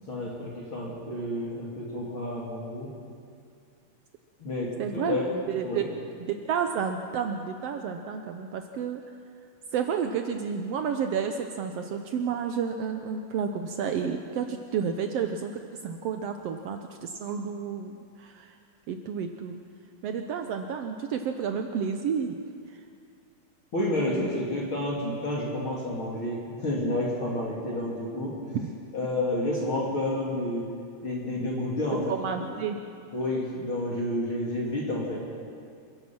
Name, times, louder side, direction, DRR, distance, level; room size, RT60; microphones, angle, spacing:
voice 1, 0.1-2.9 4.4-5.3 5.6-5.9 23.7-28.3 28.9-30.7 31.0-32.0 33.1-35.2, left 1 dB, 40° left, -3 dB, 3.2 m, -30 dB
voice 2, 4.8-5.2 5.5-5.9 6.2-9.0 9.7-18.6 18.9-19.6 20.0-22.4 22.7-22.8 28.5-28.7 32.1-32.8, right 7 dB, 80° right, 5 dB, 1.4 m, -31 dB
28.0 x 16.0 x 6.1 m, 2.3 s
omnidirectional pair, 3.9 m